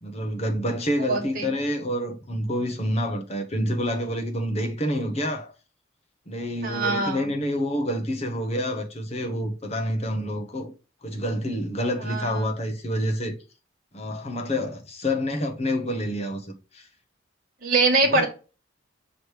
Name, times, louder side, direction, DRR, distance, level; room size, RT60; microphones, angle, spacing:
voice 1, 0.0-5.5 6.3-10.7 11.0-13.3 13.9-16.9 18.0-18.3, equal, 30° left, 1.0 m, -28 dB
voice 2, 1.0-1.4 6.6-7.2 12.1-12.3 17.6-18.3, right 3 dB, 45° right, 1.6 m, -23 dB
6.2 x 3.2 x 4.9 m
head